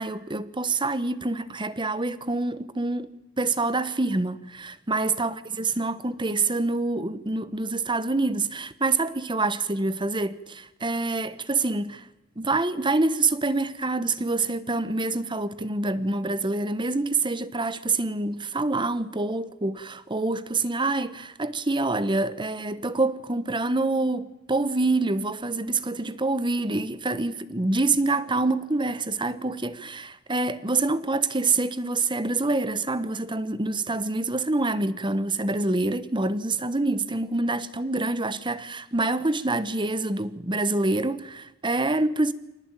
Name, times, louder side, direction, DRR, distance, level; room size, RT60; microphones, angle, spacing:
voice 1, 0.0-3.1 3.4-12.1 12.4-42.3, right 2 dB, 20° right, 1.2 m, -26 dB
26.5 x 19.0 x 9.0 m
head